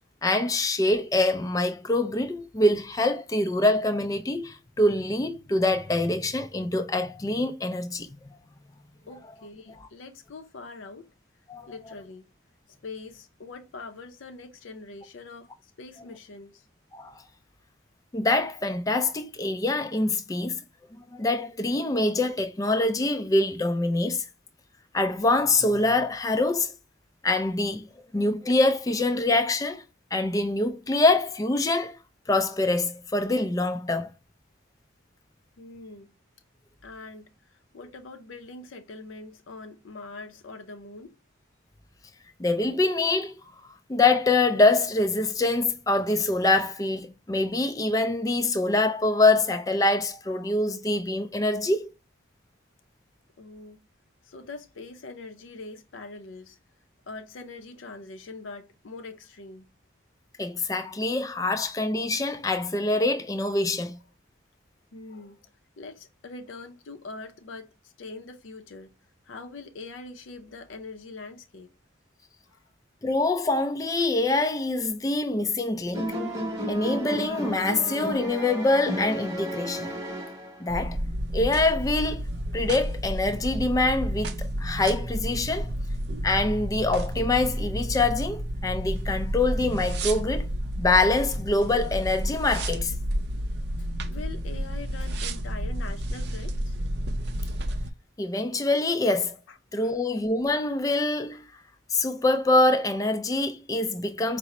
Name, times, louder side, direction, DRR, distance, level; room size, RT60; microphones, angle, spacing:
voice 1, 0.2-8.3 11.5-11.7 16.9-17.2 18.1-20.6 21.1-24.3 24.9-26.7 27.2-27.9 28.1-29.8 30.1-32.0 32.3-34.1 42.4-43.3 43.9-51.9 60.4-64.0 73.0-76.1 76.7-79.9 80.6-81.0 81.3-82.3 82.5-85.7 86.2-90.5 90.8-92.9 98.2-99.4 99.7-101.4 101.9-104.4, left 2 dB, 15° left, 0.3 m, -25 dB
voice 2, 9.1-11.1 11.7-12.3 12.8-16.7 35.6-36.1 36.8-41.1 53.4-53.8 54.2-56.6 57.1-59.7 64.9-65.5 65.8-68.9 69.3-71.7 72.5-72.6 94.1-96.8 99.5-99.9, left 3 dB, 75° left, 0.5 m, -43 dB
sound 1, 75.9-80.8, equal, 20° right, 0.9 m, -32 dB
sound 2, 80.7-97.9, equal, 55° right, 0.5 m, -31 dB
4.8 x 2.0 x 4.0 m
head